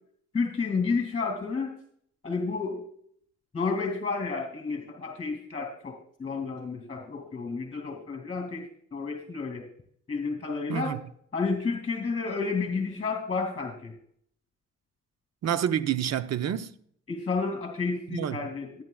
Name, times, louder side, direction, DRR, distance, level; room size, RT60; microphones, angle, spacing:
voice 1, 0.3-1.7 2.2-2.8 3.5-9.6 10.1-10.9 11.3-13.9 17.1-18.8, left 4 dB, 25° left, 2.5 m, -31 dB
voice 2, 10.7-11.0 15.4-16.7 18.1-18.5, right 9 dB, 60° right, 0.8 m, -28 dB
18.0 x 9.4 x 2.4 m
cardioid pair, 90°, 30 cm